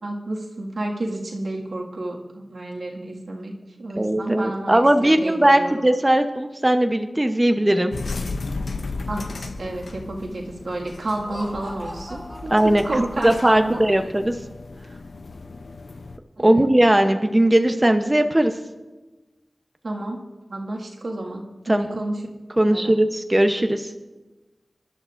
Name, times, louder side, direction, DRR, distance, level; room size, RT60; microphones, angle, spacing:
voice 1, 0.0-3.5 3.8-5.8 9.1-13.8 16.4-16.7 19.8-20.2 20.5-22.2 22.6-22.9, right 2 dB, 80° right, -2 dB, 1.8 m, -30 dB
voice 2, 4.0-7.9 12.5-12.8 13.2-14.4 16.4-18.5 21.7-22.0 22.6-23.9, right 1 dB, 20° right, 6 dB, 0.7 m, -18 dB
sound 1, 7.9-16.2, left 3 dB, 85° left, 0.5 m, -35 dB
Laughter, 11.1-13.4, equal, ahead, 2.0 m, -40 dB
23.5 x 11.5 x 2.5 m, 1.2 s
wide cardioid pair, 60°, 0 cm